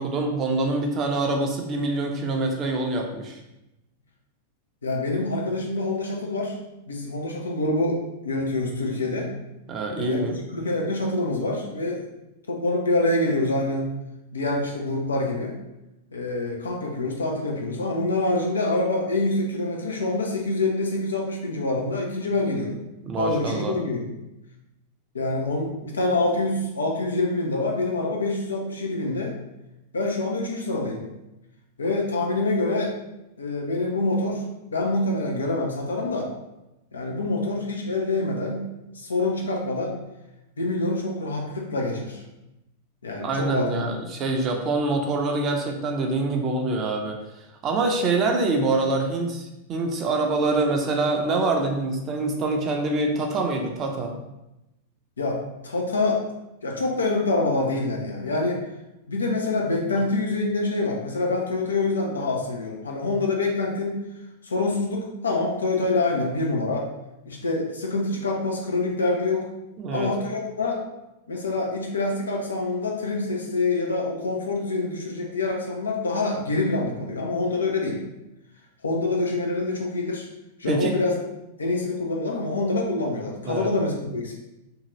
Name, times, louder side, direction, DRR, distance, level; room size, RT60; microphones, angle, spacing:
voice 1, 0.0-3.4 9.7-10.4 23.0-23.8 43.2-47.2 47.6-54.1 69.8-70.1 80.7-81.0 83.4-83.7, right 2 dB, 35° right, 2 dB, 0.6 m, -25 dB
voice 2, 4.8-6.6 6.9-9.3 10.0-12.1 12.5-13.9 14.3-15.6 16.1-22.8 23.2-24.1 25.1-29.3 29.9-31.0 31.8-32.9 33.4-34.4 34.7-36.3 36.9-38.7 38.9-40.0 40.6-42.2 43.0-43.7 55.2-56.2 56.6-58.6 59.1-64.0 64.4-66.9 67.3-69.5 69.9-70.8 71.3-78.0 78.8-80.3 80.6-81.1 81.6-84.3, left 2 dB, 85° left, 0 dB, 0.6 m, -26 dB
2.8 x 2.4 x 3.0 m, 0.93 s
hypercardioid pair, 100°, 0 cm